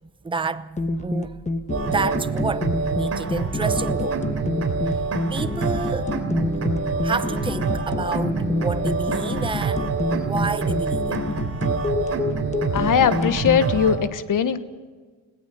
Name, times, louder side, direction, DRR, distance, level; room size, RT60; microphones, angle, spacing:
voice 1, 0.2-1.5 1.8-4.2 5.3-6.1 7.0-11.2, right 4 dB, 15° right, 0.7 m, -29 dB
sound 1, 0.8-13.6, left 3 dB, 20° left, 1.2 m, -28 dB
sound 2, 1.7-14.0, right 4 dB, 40° right, 3.4 m, -26 dB
voice 2, 12.7-14.6, left 7 dB, 55° left, 1.3 m, -20 dB
21.0 x 17.5 x 7.1 m
cardioid pair, 105°, 38 cm